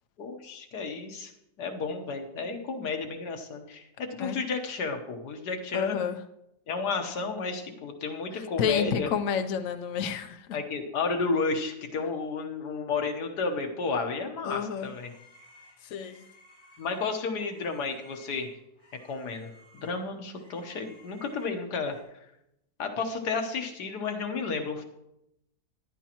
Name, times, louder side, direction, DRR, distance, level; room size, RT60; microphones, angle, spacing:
voice 1, 0.2-1.3 1.6-6.0 6.7-9.1 10.5-15.1 16.8-18.5 19.1-21.9 22.8-24.8, left 4 dB, 80° left, 4 dB, 1.7 m, -32 dB
voice 2, 5.7-6.2 8.6-10.5 14.4-14.9 15.8-16.2, left 7 dB, 65° left, 8 dB, 1.0 m, -29 dB
sound 1, 14.1-22.0, left 1 dB, 20° left, 3.1 m, -57 dB
14.5 x 11.0 x 3.0 m, 0.84 s
omnidirectional pair, 1.7 m